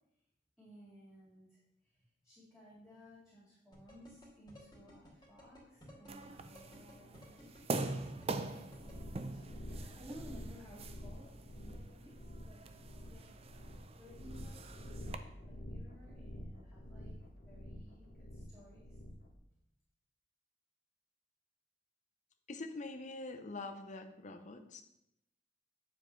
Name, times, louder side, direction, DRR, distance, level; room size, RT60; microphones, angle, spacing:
voice 1, 0.6-13.4 13.6-17.2 17.5-19.0, equal, 5° right, -10 dB, 2.3 m, -58 dB
sound 1, 3.7-8.9, left 1 dB, 20° left, 2.3 m, -56 dB
sound 2, 6.1-15.1, right 3 dB, 30° right, 0.4 m, -44 dB
sound 3, 8.7-19.3, equal, 55° left, 1.2 m, -48 dB
voice 2, 22.5-24.8, left 2 dB, 40° left, 6 dB, 0.7 m, -45 dB
8.9 x 7.2 x 3.2 m, 0.82 s
head